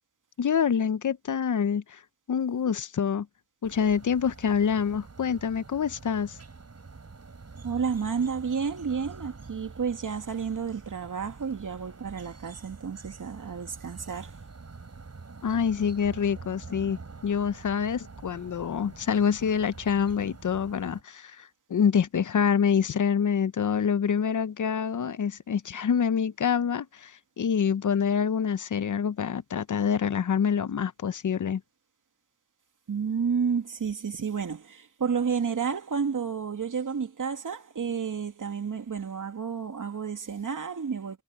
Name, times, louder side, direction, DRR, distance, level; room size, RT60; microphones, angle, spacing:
voice 1, 0.4-2.0 2.3-3.3 3.6-6.4 15.4-17.0 17.2-31.6, left 7 dB, 60° left, 0.8 m, -26 dB
sound 1, 3.6-21.0, right 4 dB, 45° right, 7.2 m, -46 dB
voice 2, 7.6-14.4 32.9-41.2, right 6 dB, 60° right, 2.7 m, -31 dB
cardioid pair, 65°, 34 cm